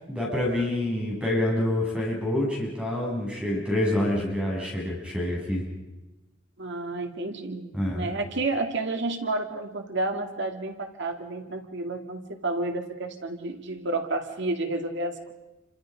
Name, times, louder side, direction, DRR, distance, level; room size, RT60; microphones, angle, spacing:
voice 1, 0.1-5.7 7.7-8.1, left 1 dB, 5° right, -3 dB, 7.6 m, -27 dB
voice 2, 6.6-15.3, right 2 dB, 60° right, 5 dB, 2.1 m, -31 dB
29.0 x 26.0 x 5.2 m, 1.0 s
head